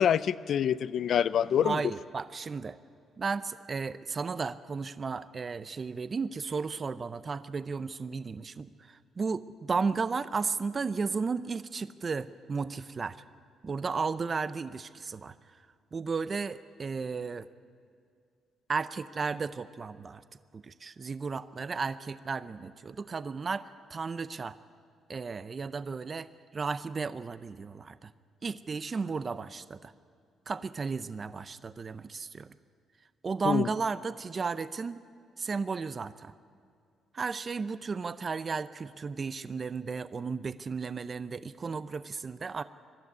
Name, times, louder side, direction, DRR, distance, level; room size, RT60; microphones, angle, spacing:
voice 1, 0.0-1.8 33.4-33.7, left 9 dB, 65° left, 15 dB, 0.4 m, -26 dB
voice 2, 1.6-2.8 3.2-13.2 13.6-15.3 15.9-17.5 18.7-20.2 20.5-23.7 23.9-24.6 25.1-26.3 26.5-28.1 28.4-29.9 30.5-32.5 33.2-35.0 35.4-36.3 37.1-42.6, right 4 dB, 35° right, 14 dB, 0.6 m, -34 dB
21.5 x 12.5 x 9.6 m, 2.3 s
cardioid pair, 90°, 0 cm